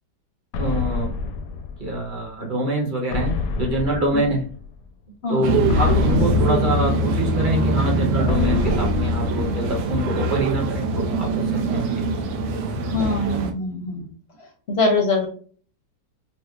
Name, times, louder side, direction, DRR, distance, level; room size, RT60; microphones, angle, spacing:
sound 1, 0.5-2.3 3.1-4.8 5.7-7.5 8.3-10.1, left 4 dB, 80° left, 1.2 m, -29 dB
voice 1, 0.5-1.1 1.8-4.4 5.3-12.2, right 1 dB, 35° right, 0 dB, 0.9 m, -25 dB
sound 2, 5.4-13.5, right 1 dB, 70° right, 1.0 m, -22 dB
voice 2, 12.9-14.1 14.7-15.3, left 2 dB, 55° left, 1 dB, 0.7 m, -23 dB
5.4 x 2.1 x 2.3 m, 0.42 s
omnidirectional pair, 1.9 m